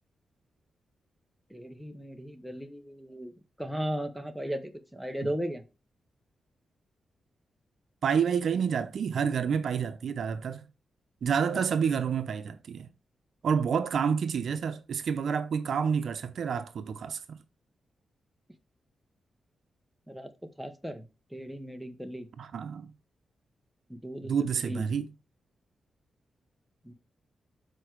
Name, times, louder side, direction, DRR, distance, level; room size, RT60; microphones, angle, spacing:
voice 1, 1.5-3.3 3.6-5.6 20.1-21.0 21.3-22.3 23.9-24.8 26.8-26.9, equal, ahead, 1.0 m, -36 dB
voice 2, 8.0-10.6 11.2-12.9 13.4-17.4 22.4-22.9 24.2-25.1, right 7 dB, 70° right, 0.7 m, -29 dB
7.0 x 4.6 x 4.7 m
wide cardioid pair, 115°, 0 cm